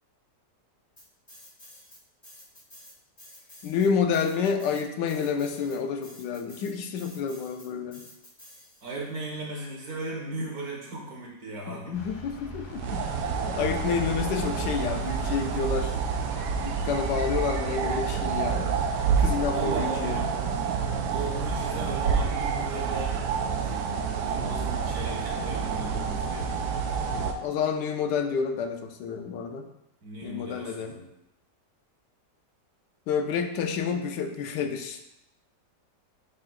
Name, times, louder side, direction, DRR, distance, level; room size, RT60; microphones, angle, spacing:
sound 1, 1.0-2.0 2.2-9.1, left 1 dB, 25° left, 2.5 m, -50 dB
voice 1, 3.6-8.1 11.7-13.1 13.4-16.0 16.6-18.8 19.2-20.2 27.4-29.7 30.2-31.0 33.1-35.0, left 6 dB, 85° left, 5 dB, 1.3 m, -29 dB
voice 2, 8.8-12.0 19.5-20.4 21.0-23.2 23.6-23.9 24.2-26.6 30.0-31.1, right 2 dB, 60° right, -2 dB, 1.8 m, -37 dB
Vehicle, 11.9-18.3, left 4 dB, 65° left, 1.6 m, -41 dB
sound 2, 12.7-27.3, right 6 dB, 75° right, 1.2 m, -28 dB
9.7 x 4.2 x 2.4 m, 0.84 s
omnidirectional pair, 1.9 m